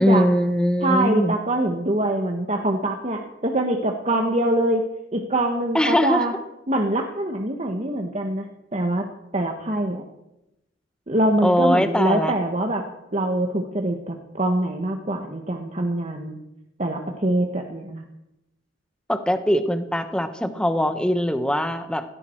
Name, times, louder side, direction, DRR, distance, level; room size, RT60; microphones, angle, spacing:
voice 1, 0.0-1.3 5.7-6.2 11.4-12.3 19.1-22.0, equal, 5° left, 9 dB, 1.1 m, -21 dB
voice 2, 0.8-4.8 5.1-6.3 6.7-8.4 8.7-9.0 9.3-10.0 11.1-12.8 13.1-16.4 16.8-18.0, right 1 dB, 35° right, 3 dB, 1.5 m, -24 dB
17.0 x 17.0 x 4.6 m, 0.89 s
head